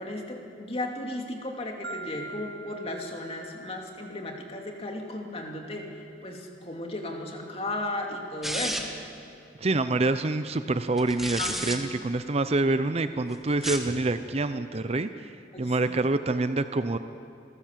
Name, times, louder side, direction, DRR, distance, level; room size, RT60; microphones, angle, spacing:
voice 1, 0.0-5.9 6.2-8.9 11.4-11.9 15.5-16.0, left 1 dB, 35° left, 1 dB, 2.6 m, -35 dB
Marimba xylophone, 1.8-4.0, right 3 dB, 70° right, 1.3 m, -43 dB
sound 1, 8.4-9.1 11.0-11.8 13.5-13.9, equal, ahead, 1.5 m, -31 dB
voice 2, 9.6-17.0, right 2 dB, 35° right, 11 dB, 0.6 m, -27 dB
27.5 x 14.0 x 7.5 m, 2.6 s
head